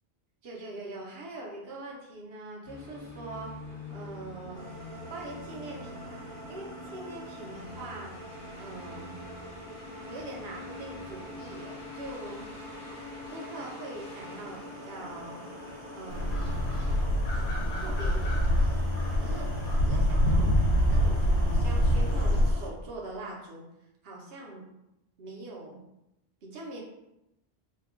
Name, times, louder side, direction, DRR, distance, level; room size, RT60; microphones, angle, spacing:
voice 1, 0.4-3.6 3.9-4.6 5.1-6.2 6.5-8.1 8.6-9.1 10.0-12.4 13.3-15.4 15.9-16.6 17.8-18.9 19.2-19.5 19.8-20.6 20.9-23.6 24.0-24.7 25.2-25.8 26.4-26.8, right 2 dB, 65° right, -2 dB, 1.0 m, -42 dB
sound 1, 2.6-17.0, left 2 dB, 55° left, 1.1 m, -45 dB
sound 2, 4.5-22.7, right 2 dB, 35° right, 0.6 m, -46 dB
sound 3, 16.1-22.5, equal, 85° left, 1.0 m, -25 dB
2.9 x 2.2 x 3.5 m, 0.89 s
omnidirectional pair, 1.1 m